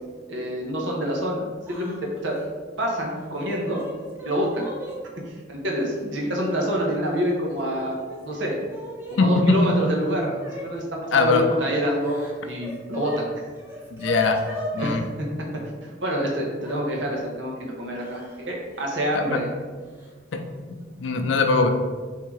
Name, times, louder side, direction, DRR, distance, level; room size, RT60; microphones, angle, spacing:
voice 1, 0.3-2.0 2.2-2.3 2.8-3.8 4.2-4.7 5.3-8.6 9.1-12.2 12.4-13.4 14.8-15.1 15.8-19.5, equal, 70° right, -1 dB, 0.9 m, -27 dB
Yell / Crying sobbing, 1.6-2.0 2.3-2.5 3.2-5.0 5.9-6.0 7.0-7.6 7.9-9.2 10.4-10.7 11.9-13.2 13.5-15.0 16.6-16.8 18.0-18.4 18.7-18.9 20.0-20.1 20.5-20.8, equal, 10° right, 0.7 m, -37 dB
voice 2, 9.2-9.6 11.1-11.5 13.9-14.4 14.7-15.0 19.1-19.4 20.3-20.4 21.0-21.7, left 3 dB, 75° left, 5 dB, 0.5 m, -20 dB
3.6 x 2.8 x 4.6 m, 1.5 s
head